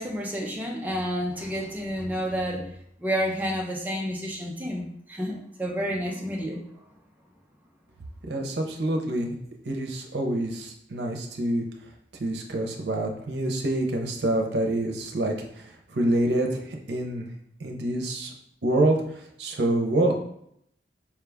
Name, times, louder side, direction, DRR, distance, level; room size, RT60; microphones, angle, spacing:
voice 1, 0.0-2.7 3.0-6.6, equal, 10° right, -2 dB, 0.5 m, -30 dB
voice 2, 8.3-9.3 9.6-11.6 12.2-17.3 17.6-18.3 18.6-20.2, right 1 dB, 75° right, 2 dB, 0.7 m, -26 dB
4.6 x 2.3 x 3.4 m, 0.71 s
head